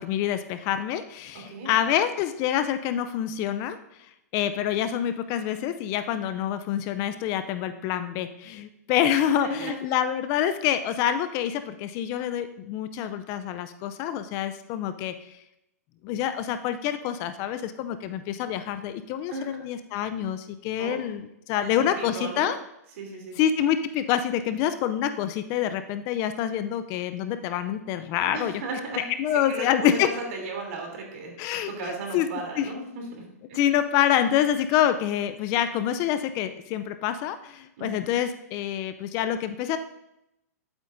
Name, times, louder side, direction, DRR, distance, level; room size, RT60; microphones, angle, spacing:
voice 1, 0.0-3.8 4.3-15.1 16.0-22.6 23.4-28.5 29.0-30.1 31.4-32.3 32.6-32.7 33.5-39.8, left 10 dB, 35° left, 10 dB, 0.5 m, -26 dB
voice 2, 1.3-1.7 9.4-9.8 19.3-19.6 20.8-21.0 21.6-22.6 23.0-23.4 28.3-29.0 29.3-31.3 31.7-33.6 37.8-38.0, right 3 dB, 55° right, 1 dB, 3.1 m, -35 dB
12.0 x 8.0 x 2.6 m, 0.86 s
hypercardioid pair, 135°, 9 cm